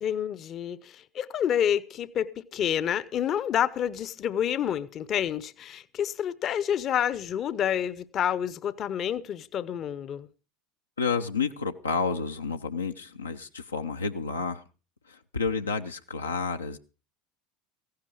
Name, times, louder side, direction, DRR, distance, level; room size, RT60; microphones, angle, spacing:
voice 1, 0.0-10.3, left 9 dB, 40° left, 0.7 m, -28 dB
voice 2, 11.0-14.6 15.1-16.8, left 4 dB, 85° left, 0.6 m, -30 dB
15.0 x 11.5 x 5.0 m
figure-of-eight pair, 75°, 0 cm